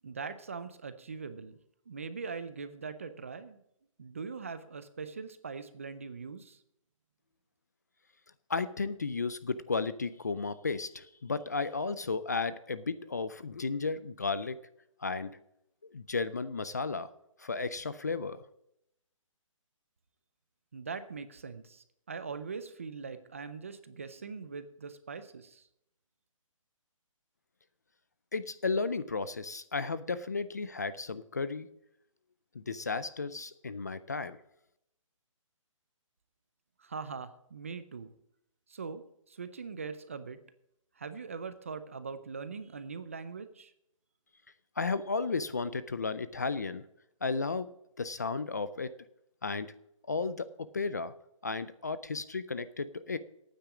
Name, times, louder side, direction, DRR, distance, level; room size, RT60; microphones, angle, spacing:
voice 1, 0.0-1.6 1.9-3.6 4.0-6.6 20.7-25.7 36.8-38.1 38.7-40.4 41.0-43.7, right 5 dB, 25° right, 12 dB, 0.5 m, -41 dB
voice 2, 8.5-14.6 15.0-15.3 15.9-17.1 17.4-18.4 28.3-31.7 32.7-34.4 44.8-46.8 47.2-47.7 48.0-48.9 49.4-49.7 50.1-50.5 50.7-51.1 51.4-53.2, left 4 dB, 30° left, 15 dB, 0.4 m, -33 dB
9.1 x 8.5 x 7.3 m, 0.77 s
hypercardioid pair, 175°, 17 cm